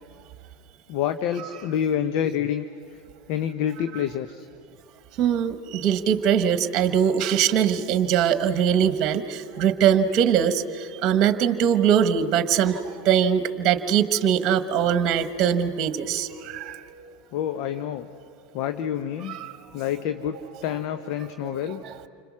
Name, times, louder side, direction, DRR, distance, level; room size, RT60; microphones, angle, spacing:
voice 1, 0.9-2.6 3.3-4.5 17.3-18.1 18.5-19.4 19.7-21.8, left 9 dB, 60° left, 9 dB, 0.9 m, -27 dB
voice 2, 5.2-17.2 19.2-19.5 21.4-22.1, right 8 dB, 45° right, 10 dB, 1.2 m, -22 dB
29.5 x 26.0 x 6.2 m, 2.6 s
hypercardioid pair, 85°, 0 cm